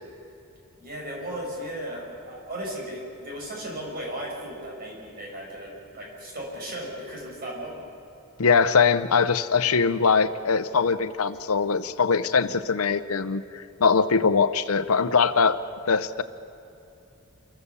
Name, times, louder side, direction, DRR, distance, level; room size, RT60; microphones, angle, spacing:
voice 1, 0.8-7.8, right 1 dB, 45° right, -2 dB, 6.0 m, -36 dB
voice 2, 8.4-15.6 15.9-16.2, left 5 dB, 80° left, 12 dB, 0.7 m, -22 dB
27.0 x 15.0 x 7.1 m, 2.9 s
head